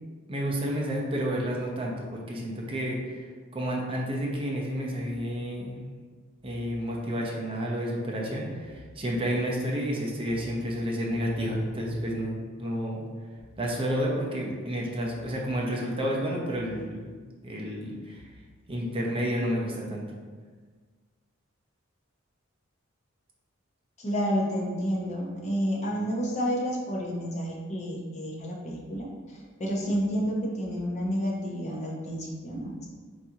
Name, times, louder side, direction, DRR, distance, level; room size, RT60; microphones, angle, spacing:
voice 1, 0.3-3.3 3.5-5.8 6.4-13.1 13.6-17.1 17.4-18.2 18.7-20.0, equal, 25° right, -3 dB, 0.7 m, -30 dB
voice 2, 24.0-29.1 29.6-32.9, equal, 35° left, -3 dB, 0.8 m, -30 dB
4.0 x 3.0 x 3.6 m, 1.5 s
head